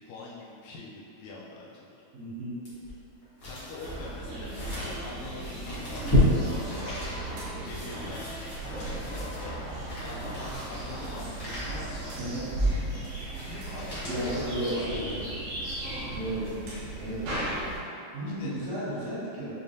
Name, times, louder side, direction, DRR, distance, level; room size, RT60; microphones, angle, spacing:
voice 1, 0.0-2.0 3.4-7.2 7.6-9.6 10.0-12.3 13.4-15.1 15.9-16.2 18.2-18.5, left 2 dB, 85° left, -5 dB, 1.5 m, -44 dB
voice 2, 2.1-2.6 12.2-12.5 14.1-15.4 16.1-16.5 17.0-17.3 18.1-19.5, right 1 dB, 65° right, -11 dB, 2.1 m, -33 dB
sound 1, 2.6-15.3 15.8-15.9, left 1 dB, 70° left, 0.9 m, -33 dB
sound 2, 3.8-17.8, right 1 dB, 80° right, 2.5 m, -35 dB
6.6 x 2.3 x 2.6 m, 2.6 s
omnidirectional pair, 3.7 m